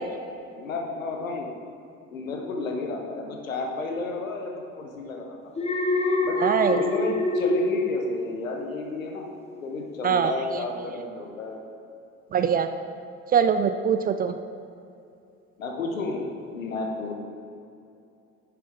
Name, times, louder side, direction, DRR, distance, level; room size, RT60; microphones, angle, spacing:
voice 1, 0.6-1.5 2.1-5.4 6.2-6.4 6.7-9.3 9.6-11.6 15.6-16.3 16.5-17.2, left 3 dB, 80° left, 2 dB, 1.0 m, -32 dB
Alarm, 5.5-8.9 9.2-9.6, left 2 dB, 15° left, 0.9 m, -26 dB
voice 2, 6.4-6.8 10.0-10.3 12.3-12.7 13.3-14.3, right 7 dB, 25° right, 9 dB, 0.3 m, -22 dB
10.5 x 7.1 x 3.5 m, 2.6 s
figure-of-eight pair, 55°, 40 cm